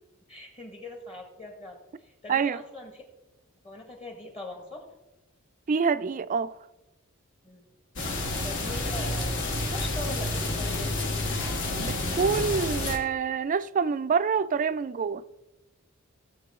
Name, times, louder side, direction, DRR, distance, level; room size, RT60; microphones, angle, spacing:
voice 1, 0.3-3.0 3.6-4.8 7.4-7.7 8.4-10.9, left 2 dB, 30° left, 1.5 m, -41 dB
voice 2, 2.3-2.6 5.7-6.5 11.8-15.2, right 5 dB, 35° right, 0.3 m, -26 dB
sound 1, 8.0-13.0, left 2 dB, 60° left, 1.4 m, -29 dB
15.5 x 6.9 x 3.7 m
head